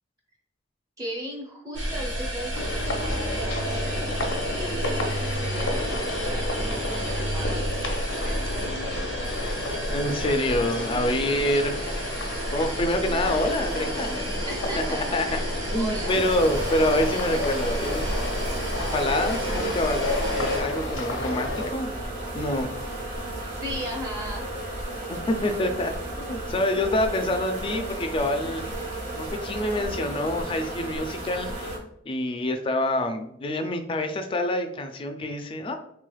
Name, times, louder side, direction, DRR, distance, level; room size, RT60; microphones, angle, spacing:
voice 1, 1.0-4.2 4.4-9.6 14.4-16.3 22.3-22.6 23.4-24.5, equal, 20° right, 0 dB, 0.6 m, -38 dB
sound 1, 1.7-20.6, right 1 dB, 70° right, 1.1 m, -31 dB
sound 2, 2.5-21.7, left 2 dB, 70° left, 0.6 m, -32 dB
voice 2, 9.9-11.7 12.5-14.3 15.1-15.4 15.7-18.0 18.9-21.9 22.3-22.7 25.1-28.6 29.2-31.7 32.1-35.8, left 1 dB, 25° left, 6 dB, 0.3 m, -26 dB
sound 3, 16.1-31.8, right 1 dB, 40° right, 1.1 m, -34 dB
3.2 x 3.1 x 2.3 m, 0.72 s
head